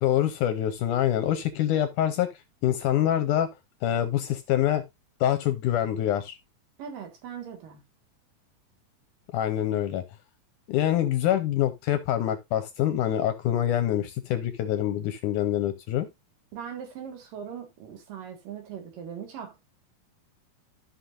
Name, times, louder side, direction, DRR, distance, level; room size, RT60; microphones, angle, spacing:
voice 1, 0.0-2.3 2.6-3.5 3.8-4.8 5.2-6.4 9.3-10.0 10.7-16.1, left 11 dB, 75° left, 2.0 m, -25 dB
voice 2, 6.8-7.8 16.5-19.6, right 8 dB, 70° right, 3.4 m, -40 dB
13.0 x 5.8 x 2.5 m
omnidirectional pair, 4.1 m